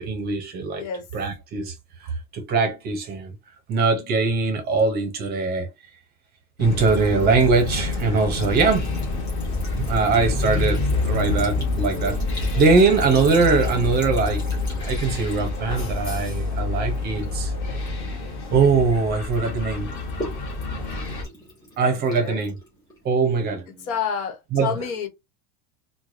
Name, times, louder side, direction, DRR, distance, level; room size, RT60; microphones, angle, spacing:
voice 1, 0.0-0.8 1.1-1.7 2.0-3.3 3.7-5.7 6.6-8.9 9.8-14.4 14.8-17.5 18.5-19.9 21.8-22.5 23.0-23.6 24.5-24.7, right 4 dB, 25° right, 0.6 m, -22 dB
voice 2, 0.8-1.1 22.1-22.5 23.8-25.1, left 7 dB, 80° left, 1.2 m, -29 dB
sound 1, 6.6-21.2, left 3 dB, 30° left, 1.0 m, -27 dB
Sink (filling or washing) / Trickle dribble, 6.8-18.9 19.3-23.1, left 1 dB, 10° left, 1.8 m, -43 dB
4.5 x 2.2 x 2.5 m
cardioid pair, 170°, 42 cm